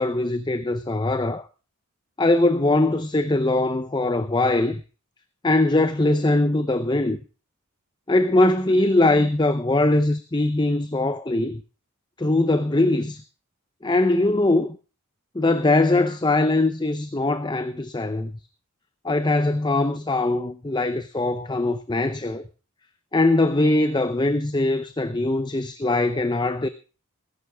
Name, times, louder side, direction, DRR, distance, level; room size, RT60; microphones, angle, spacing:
voice 1, 0.0-1.5 2.2-4.8 5.4-7.2 8.1-11.6 12.2-13.2 13.8-14.8 15.3-18.3 19.0-22.4 23.1-26.7, left 2 dB, 20° left, 0.6 m, -21 dB
20.5 x 11.0 x 3.5 m
head